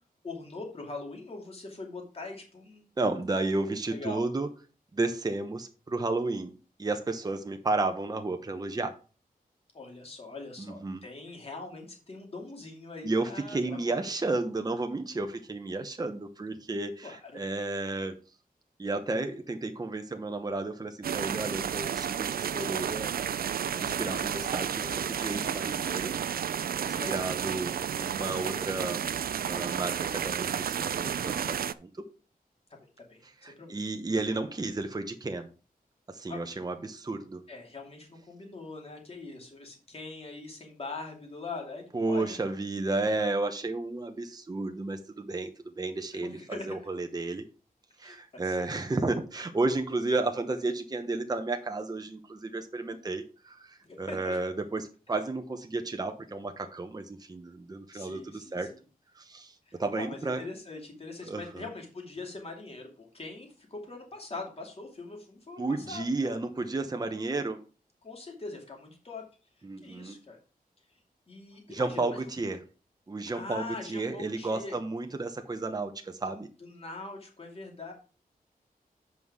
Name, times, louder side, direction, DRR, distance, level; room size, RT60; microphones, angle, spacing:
voice 1, 0.2-2.9 3.7-4.2 9.7-14.0 17.0-17.4 26.9-27.3 33.0-33.2 33.6-33.8 36.3-36.4 37.5-42.5 46.1-46.8 48.0-49.1 53.8-54.4 57.9-58.7 59.7-66.4 66.9-67.1 68.0-69.2 69.6-70.4 71.3-72.2 73.3-74.8 76.3-77.9, left 3 dB, 40° left, 1 dB, 2.6 m, -42 dB
voice 2, 3.0-4.5 4.9-8.9 10.6-11.0 13.0-18.1 18.8-23.1 23.8-26.1 26.8-29.2 29.4-31.9 33.2-35.5 36.1-37.4 41.9-47.5 48.0-58.7 59.2-60.4 61.2-61.7 65.6-67.6 69.6-70.2 71.7-72.6 73.1-76.5, right 2 dB, 25° right, 6 dB, 0.9 m, -32 dB
sound 1, 21.0-31.7, right 8 dB, 75° right, 0.4 m, -32 dB
7.8 x 5.5 x 4.8 m, 0.35 s
wide cardioid pair, 130°, 15 cm